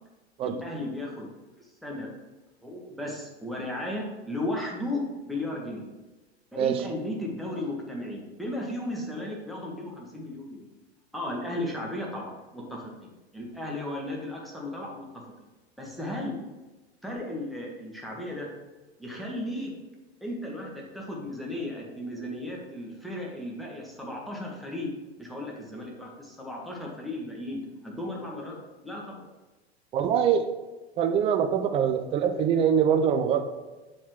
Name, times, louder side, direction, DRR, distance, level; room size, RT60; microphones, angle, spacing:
voice 1, 0.4-1.3 1.6-2.1 2.6-5.9 6.5-10.5 11.1-15.1 15.8-16.4 17.0-18.5 19.0-19.7 20.2-24.9 25.2-28.6 28.8-29.2, left 1 dB, ahead, -3 dB, 1.3 m, -35 dB
voice 2, 29.9-30.5 31.0-33.4, right 8 dB, 20° right, 7 dB, 0.3 m, -23 dB
7.2 x 4.3 x 3.1 m, 1.2 s
figure-of-eight pair, 90°, 33 cm